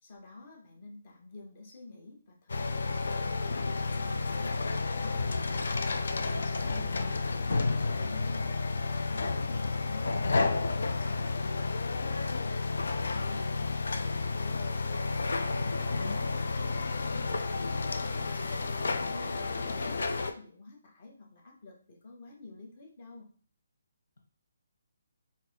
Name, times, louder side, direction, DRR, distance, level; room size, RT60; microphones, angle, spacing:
voice 1, 0.0-11.6 12.0-14.7 15.3-16.2 16.5-23.3, left 3 dB, 35° left, 1 dB, 0.8 m, -50 dB
sound 1, 2.5-20.3, left 3 dB, 70° left, 0.3 m, -31 dB
voice 2, 6.1-7.2 15.5-16.2, left 2 dB, 90° left, 0 dB, 1.0 m, -41 dB
4.0 x 2.5 x 2.2 m, 0.43 s
hypercardioid pair, 170°, 0 cm